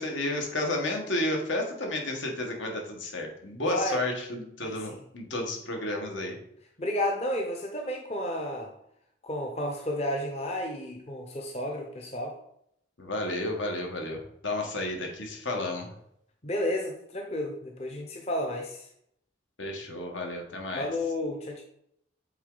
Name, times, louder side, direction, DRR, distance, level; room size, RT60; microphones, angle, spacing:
voice 1, 0.0-6.4 13.0-15.9 19.6-20.9, left 1 dB, 75° left, 2 dB, 1.4 m, -32 dB
voice 2, 3.6-4.0 4.6-5.0 6.8-8.7 9.2-12.3 16.4-18.9 20.8-21.6, left 1 dB, 35° left, 1 dB, 0.7 m, -32 dB
8.1 x 3.6 x 3.9 m, 0.73 s
head